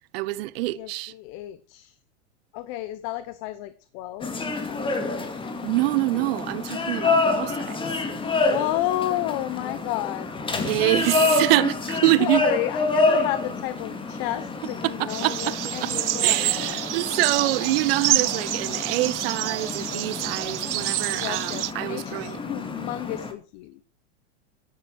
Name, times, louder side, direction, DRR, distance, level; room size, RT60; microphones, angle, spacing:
voice 1, 0.1-1.1 5.6-7.8 10.6-12.4 14.8-15.6 16.2-22.4, right 20 dB, 55° right, 1.0 m, -25 dB
voice 2, 0.7-2.0 2.5-4.3 4.6-4.9 8.2-11.1 12.2-17.7 21.1-23.9, left 15 dB, 50° left, 1.2 m, -32 dB
sound 1, 4.2-23.3, left 3 dB, 15° left, 2.3 m, -28 dB
sound 2, 15.1-21.7, right 14 dB, 80° right, 1.0 m, -27 dB
13.5 x 10.5 x 4.8 m
supercardioid pair, 135°, 34 cm